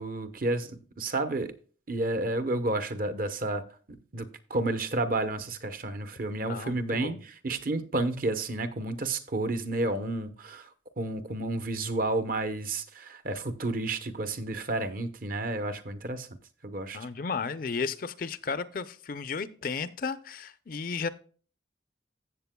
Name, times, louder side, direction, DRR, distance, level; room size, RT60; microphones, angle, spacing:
voice 1, 0.0-1.5 1.9-7.2 7.4-10.7 11.0-16.3 16.6-17.0, right 2 dB, 50° right, 0.9 m, -31 dB
voice 2, 6.4-7.2 16.9-21.1, left 5 dB, 50° left, 0.5 m, -34 dB
15.0 x 7.3 x 2.2 m
head